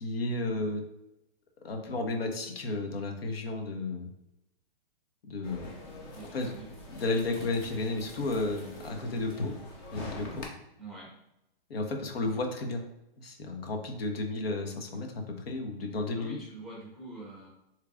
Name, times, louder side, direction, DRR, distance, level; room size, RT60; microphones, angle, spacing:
voice 1, 0.0-0.8 1.6-4.1 5.2-5.8 6.2-6.5 6.9-9.5 9.9-10.5 11.7-12.8 13.2-16.4, left 2 dB, 85° left, 4 dB, 1.1 m, -33 dB
sound 1, 5.4-10.4, left 1 dB, 25° left, 0.7 m, -44 dB
voice 2, 6.1-6.7 10.8-11.2 16.1-17.5, right 2 dB, ahead, -4 dB, 1.0 m, -45 dB
6.8 x 3.2 x 2.4 m, 0.86 s
hypercardioid pair, 165°, 29 cm